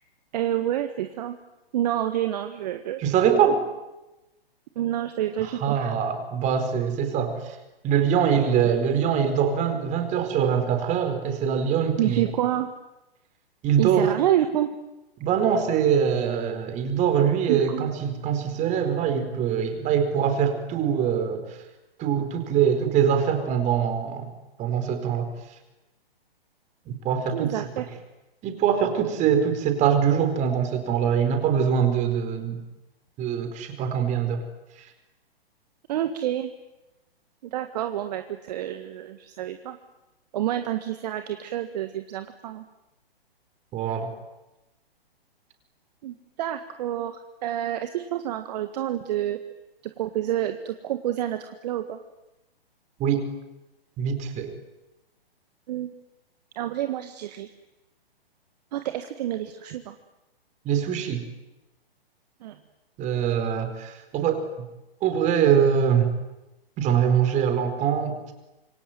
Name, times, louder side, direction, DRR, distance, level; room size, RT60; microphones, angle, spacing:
voice 1, 0.3-1.4 1.7-3.0 4.7-5.9 8.3-8.4 12.0-12.7 13.8-14.7 17.5-17.9 27.3-27.8 35.9-36.5 37.5-39.8 40.3-42.6 46.0-49.4 50.0-52.0 55.7-55.9 56.5-57.5 58.7-59.9 62.4-62.6, right 12 dB, 45° right, 9 dB, 1.7 m, -28 dB
voice 2, 3.0-3.7 5.4-7.6 7.8-12.2 13.6-14.1 15.2-21.6 22.0-24.3 24.6-25.3 26.9-27.5 28.4-32.6 33.2-34.4 43.7-44.1 53.0-53.2 54.0-54.5 60.6-61.2 63.0-64.5 65.0-66.1 66.8-68.3, right 8 dB, 25° right, 8 dB, 4.4 m, -23 dB
27.0 x 23.5 x 9.4 m, 0.98 s
figure-of-eight pair, 125°, 30 cm